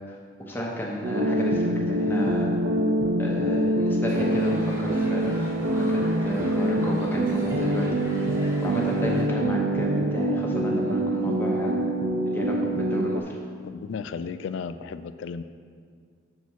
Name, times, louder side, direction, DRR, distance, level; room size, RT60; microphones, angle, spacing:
voice 1, 0.5-2.6 3.2-5.3 5.8-11.8 12.3-13.4, equal, 10° left, -3 dB, 1.0 m, -32 dB
sound 1, 1.0-13.2, right 1 dB, 65° right, 0.5 m, -25 dB
sound 2, 4.1-9.2, equal, 15° right, 1.3 m, -39 dB
voice 2, 13.6-15.4, left 5 dB, 80° left, 12 dB, 0.3 m, -34 dB
6.9 x 4.3 x 6.2 m, 2.1 s
head